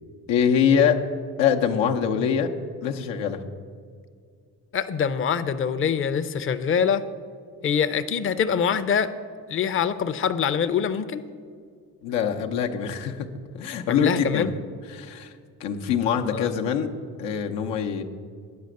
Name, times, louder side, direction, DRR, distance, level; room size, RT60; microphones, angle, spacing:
voice 1, 0.3-1.0 1.4-2.5 2.8-3.4 12.0-13.3 13.5-14.5 14.9-15.3 15.6-16.9 17.2-18.0, left 7 dB, 90° left, 3 dB, 0.8 m, -23 dB
voice 2, 4.7-7.1 7.6-9.1 9.5-11.2 13.9-14.5 16.3-16.5, left 7 dB, 30° left, 10 dB, 0.5 m, -24 dB
9.5 x 5.0 x 7.7 m, 2.1 s
cardioid pair, 70°, 42 cm